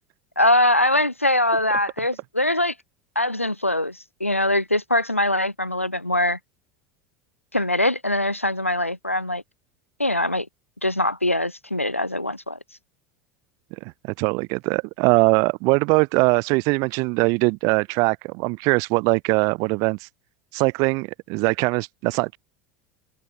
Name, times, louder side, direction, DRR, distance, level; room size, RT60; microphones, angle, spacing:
voice 1, 0.4-2.7 3.1-6.4 7.5-9.4 10.0-10.5 10.8-12.6, left 1 dB, 90° left, 2.9 m, -22 dB
voice 2, 13.8-20.1 20.5-22.4, right 29 dB, 50° right, 2.2 m, -21 dB
open air
figure-of-eight pair, 75°, 7 cm